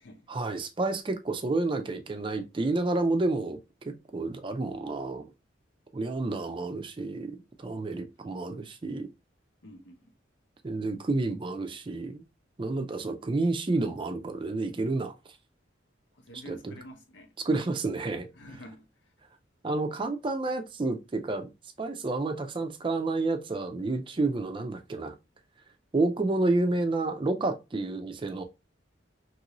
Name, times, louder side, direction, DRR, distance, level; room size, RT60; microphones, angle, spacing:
voice 1, 0.3-3.6 3.8-5.3 5.9-9.1 10.6-12.2 12.6-15.1 16.5-16.7 17.4-18.3 19.6-21.5 21.8-25.1 25.9-28.4, right 2 dB, 25° right, 0.4 m, -30 dB
voice 2, 9.6-10.1 16.1-17.3 18.3-19.1, equal, 75° left, 0.8 m, -48 dB
3.0 x 2.6 x 2.9 m
head